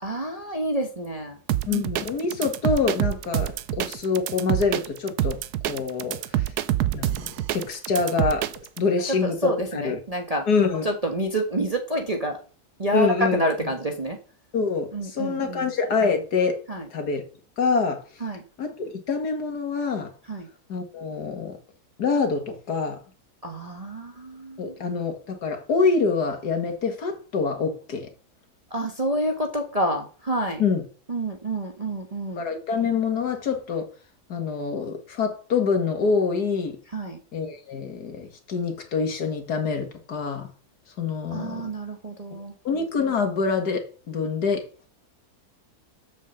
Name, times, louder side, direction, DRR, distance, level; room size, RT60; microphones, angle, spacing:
voice 1, 0.0-1.4 1.7-1.8 9.1-10.5 10.8-12.4 12.8-14.2 14.9-15.7 16.7-16.9 18.2-18.4 20.3-20.5 23.4-24.7 28.7-30.6 31.1-32.4 36.9-37.2 41.3-42.5, right 1 dB, 25° right, 1.2 m, -28 dB
sound 1, 1.5-8.8, right 13 dB, 85° right, 1.2 m, -26 dB
voice 2, 1.7-6.5 6.9-8.5 8.8-9.5 9.8-10.0 10.5-10.8 12.9-13.4 14.5-16.6 16.9-17.2 17.6-18.0 18.6-20.1 20.7-21.6 22.0-23.0 24.6-28.1 30.6-30.8 32.4-33.9 34.3-36.8 37.3-40.5 41.0-41.6 42.3-42.4 42.6-44.6, left 5 dB, 80° left, 2.3 m, -25 dB
7.2 x 6.1 x 7.1 m
omnidirectional pair, 1.7 m